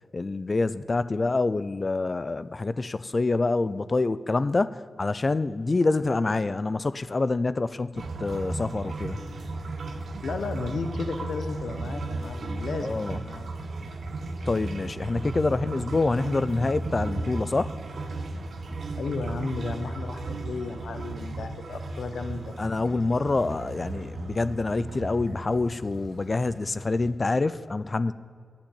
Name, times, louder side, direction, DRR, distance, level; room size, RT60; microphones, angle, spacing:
voice 1, 0.1-9.2 12.8-13.2 14.5-17.7 22.6-28.1, left 3 dB, 35° left, 15 dB, 0.3 m, -26 dB
sound 1, 7.9-27.1, right 2 dB, 70° right, 1.0 m, -35 dB
voice 2, 10.2-13.5 18.9-22.6, left 4 dB, 80° left, 8 dB, 0.9 m, -34 dB
8.9 x 8.5 x 8.2 m, 2.1 s
wide cardioid pair, 80°, 0 cm